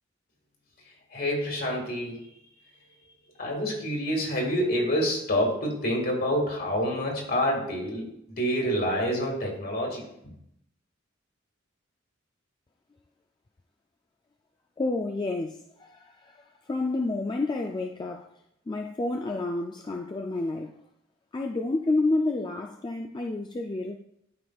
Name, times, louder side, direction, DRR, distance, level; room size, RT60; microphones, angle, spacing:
voice 1, 1.1-2.2 3.4-10.0, equal, 50° left, 1.9 m, -27 dB
voice 2, 14.8-18.3 18.7-20.8 21.3-24.0, left 2 dB, 20° left, 0.3 m, -29 dB
12.0 x 5.1 x 2.3 m
head